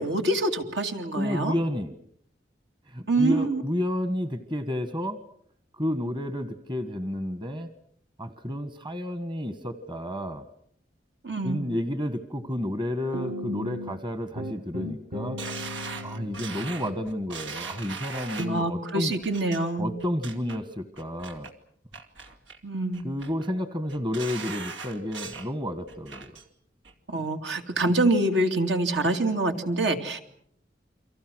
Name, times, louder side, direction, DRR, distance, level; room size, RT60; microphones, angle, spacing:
voice 1, 0.0-1.5 3.1-3.6 11.2-11.7 18.5-19.9 22.6-23.0 27.1-30.2, right 2 dB, 70° right, 5 dB, 2.7 m, -25 dB
voice 2, 1.1-1.9 2.9-5.2 5.7-7.7 8.2-10.4 11.4-15.4 16.0-19.2 19.8-21.5 23.0-26.3, left 1 dB, 25° right, 10 dB, 1.5 m, -31 dB
sound 1, 13.1-14.0 14.4-17.9 18.4-18.6, equal, 50° right, 1.5 m, -36 dB
sound 2, 15.4-18.6 19.2-19.6 20.0-20.6 21.0-21.5 21.9-22.6 22.9-23.5 23.9-25.5 25.9-26.4 26.8-26.9, right 5 dB, 90° right, 2.6 m, -39 dB
30.0 x 24.5 x 6.3 m, 0.67 s
head